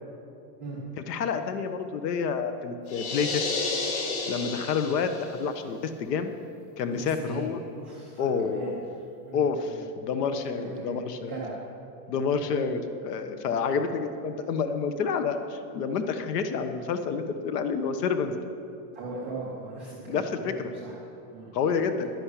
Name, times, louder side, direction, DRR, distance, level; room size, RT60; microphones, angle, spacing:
voice 1, 1.1-3.5 4.3-6.3 6.8-7.6 8.2-9.0 9.3-11.3 12.1-18.3 20.1-20.5 21.5-22.1, left 5 dB, 70° left, 9 dB, 1.3 m, -29 dB
sound 1, 2.9-5.4, left 3 dB, 40° left, 3.8 m, -31 dB
voice 2, 7.0-8.7 9.3-9.8 10.1-11.0 11.3-11.6 12.1-12.2 13.7-13.8 18.9-21.6 22.0-22.1, right 2 dB, 10° right, -13 dB, 0.3 m, -39 dB
11.0 x 10.5 x 8.4 m, 2.6 s
supercardioid pair, 180°, 49 cm